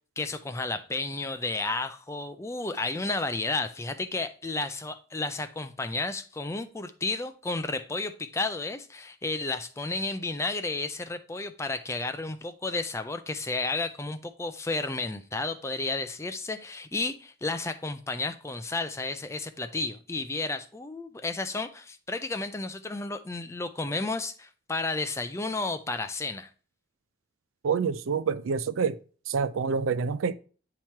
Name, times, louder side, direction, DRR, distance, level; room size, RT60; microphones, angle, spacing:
voice 1, 0.2-26.5, left 3 dB, 15° left, 0.4 m, -32 dB
voice 2, 27.6-29.0 29.3-30.3, right 5 dB, 75° right, 0.4 m, -27 dB
8.8 x 3.0 x 4.5 m
head